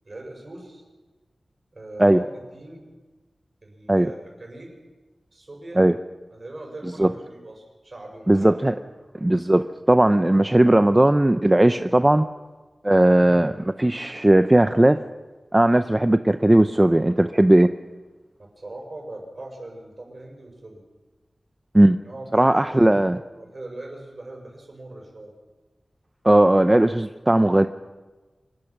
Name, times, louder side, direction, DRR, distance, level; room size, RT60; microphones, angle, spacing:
voice 1, 0.0-0.8 1.7-2.9 3.6-4.7 5.3-5.8 6.3-8.6 18.4-20.8 22.0-22.6 23.3-25.3, right 2 dB, 50° right, 1 dB, 6.5 m, -40 dB
voice 2, 8.3-8.7 9.2-12.3 12.8-15.0 15.5-17.7 21.7-22.0 22.3-23.2 26.2-27.7, right 1 dB, 20° right, 10 dB, 0.6 m, -17 dB
25.5 x 20.5 x 6.0 m, 1.3 s
wide cardioid pair, 80°, 0 cm